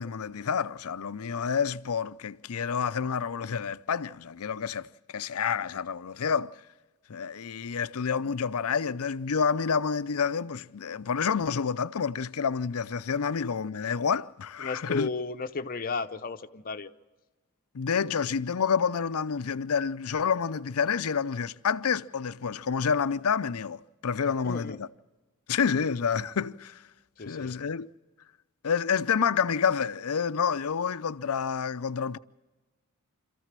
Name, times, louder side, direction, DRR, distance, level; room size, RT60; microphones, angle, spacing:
voice 1, 0.0-4.9 5.1-6.6 7.1-15.1 17.7-24.9 25.5-26.8 27.2-27.9 28.6-32.2, left 6 dB, 80° left, 0.6 m, -28 dB
voice 2, 14.6-16.9 24.4-24.8 27.2-27.6, left 4 dB, 40° left, 0.8 m, -34 dB
26.0 x 14.5 x 7.5 m
head